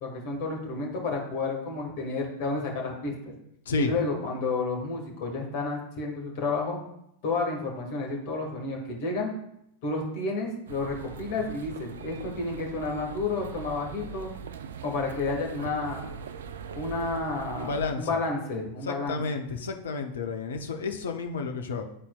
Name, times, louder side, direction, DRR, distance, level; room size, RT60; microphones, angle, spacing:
voice 1, 0.0-3.1 3.8-6.8 7.2-9.3 9.8-14.3 14.8-16.1 16.7-17.7 18.0-19.2, left 3 dB, 50° left, 0 dB, 1.7 m, -31 dB
sound 1, 10.7-17.9, right 7 dB, 60° right, 0.4 m, -41 dB
voice 2, 17.5-18.2 18.8-21.8, left 4 dB, 65° left, 5 dB, 0.7 m, -31 dB
11.0 x 4.2 x 2.4 m, 0.77 s
figure-of-eight pair, 90°, 0 cm